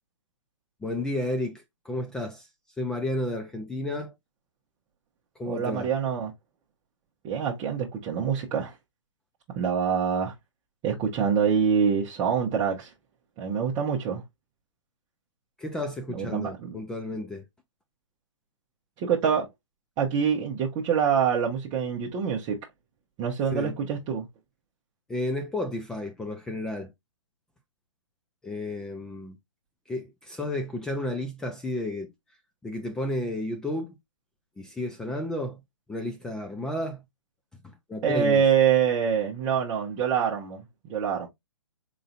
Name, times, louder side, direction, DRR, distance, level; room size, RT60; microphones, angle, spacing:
voice 1, 0.8-2.5 2.8-4.1 5.4-5.9 15.6-17.4 23.5-23.8 25.1-26.9 28.4-29.4 29.9-32.1 32.6-33.9 34.6-35.6 35.9-37.0 37.6-38.4, left 1 dB, 5° left, 0.3 m, -32 dB
voice 2, 5.4-6.3 7.2-8.7 9.5-10.3 10.8-12.9 13.4-14.2 16.1-16.8 19.0-19.5 20.0-22.6 23.2-24.3 38.0-41.3, right 7 dB, 25° right, 0.8 m, -25 dB
4.0 x 3.8 x 2.3 m
hypercardioid pair, 135°, 16 cm